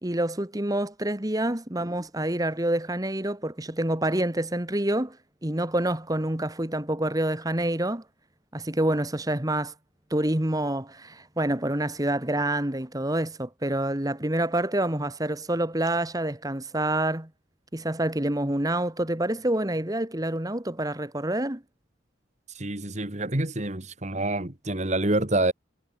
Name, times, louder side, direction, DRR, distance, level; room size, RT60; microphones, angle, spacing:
voice 1, 0.0-5.2 5.4-8.0 8.5-9.7 10.1-17.3 17.7-21.6, right 1 dB, 20° right, 1.6 m, -27 dB
voice 2, 22.6-25.5, right 2 dB, 40° right, 2.3 m, -27 dB
head